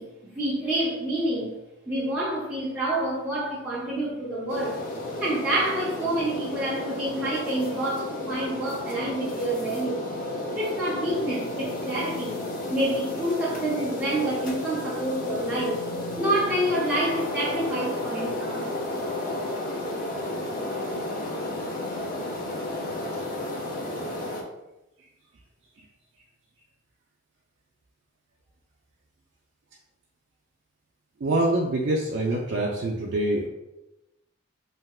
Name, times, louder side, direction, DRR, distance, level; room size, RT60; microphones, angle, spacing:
voice 1, 0.0-1.6 1.9-4.8 5.2-10.1 10.5-15.8 16.2-18.7, right 1 dB, 5° right, -9 dB, 0.5 m, -28 dB
sound 1, 4.5-24.4, left 1 dB, 45° left, 0.5 m, -32 dB
voice 2, 31.2-33.5, right 1 dB, 60° right, -3 dB, 0.4 m, -25 dB
3.3 x 2.7 x 2.3 m, 0.94 s
head